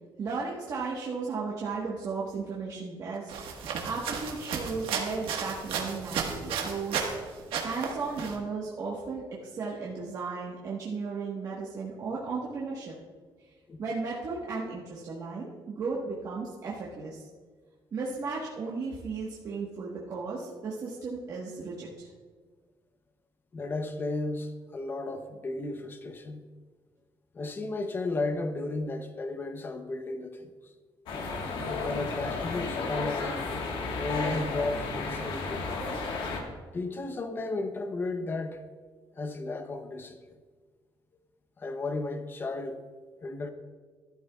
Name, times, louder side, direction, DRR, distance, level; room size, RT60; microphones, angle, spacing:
voice 1, 0.2-3.3 3.8-7.1 7.6-12.9 13.8-17.3 17.9-22.1, right 4 dB, 40° right, 1.3 m, -35 dB
sound 1, 3.3-7.2 7.5-8.3, right 6 dB, 80° right, 1.4 m, -33 dB
voice 2, 23.5-26.4 27.3-30.7 31.7-33.3 33.9-35.6 36.7-38.6 39.1-40.3 41.6-42.8 43.2-43.5, left 2 dB, 25° left, 0.7 m, -34 dB
sound 2, 31.1-36.4, left 3 dB, 70° left, 1.5 m, -33 dB
13.5 x 12.0 x 2.3 m
cardioid pair, 170°, 9 cm